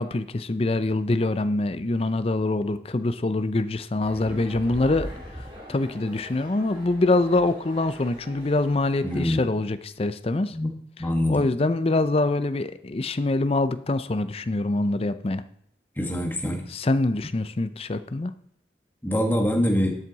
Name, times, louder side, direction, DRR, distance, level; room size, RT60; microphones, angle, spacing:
voice 1, 0.0-5.1 5.3-10.6 11.3-15.4 16.7-18.3, left 2 dB, 35° left, 13 dB, 0.5 m, -24 dB
sound 1, 4.0-9.3, equal, 25° right, 2.9 m, -41 dB
voice 2, 9.0-9.4 10.5-10.7 11.0-11.5 16.0-16.6 19.0-19.9, equal, 10° left, 2 dB, 1.5 m, -24 dB
12.0 x 7.6 x 4.0 m, 0.73 s
head